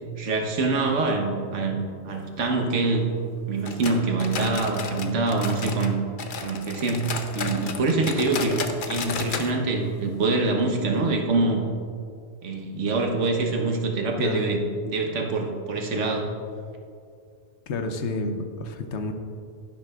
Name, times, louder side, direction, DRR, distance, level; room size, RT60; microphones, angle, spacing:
voice 1, 0.2-3.1 3.5-5.9 6.4-8.6 8.8-11.7 12.4-14.6 14.8-16.3, right 3 dB, 90° right, 2 dB, 1.3 m, -25 dB
sound 1, 3.6-5.9 6.2-9.5 9.8-9.9 10.3-10.4 10.9-11.0, left 5 dB, 50° left, 0.8 m, -33 dB
voice 2, 14.2-14.5 17.7-19.1, left 2 dB, 75° left, 6 dB, 1.0 m, -29 dB
11.5 x 10.5 x 2.4 m, 2.3 s
omnidirectional pair, 1.2 m